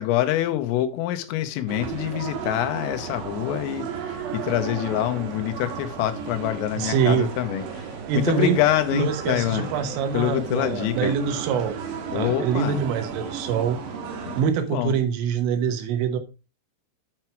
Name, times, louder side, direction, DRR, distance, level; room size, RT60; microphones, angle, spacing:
voice 1, 0.0-9.7 10.1-11.2 12.1-12.8 14.3-14.9, left 13 dB, 90° left, 3.6 m, -26 dB
sound 1, 1.7-14.4, right 6 dB, 65° right, 2.7 m, -34 dB
voice 2, 6.8-7.3 8.1-8.6 8.9-11.8 12.1-13.8 14.4-16.2, right 7 dB, 80° right, 3.7 m, -24 dB
8.9 x 5.9 x 4.5 m
omnidirectional pair, 5.8 m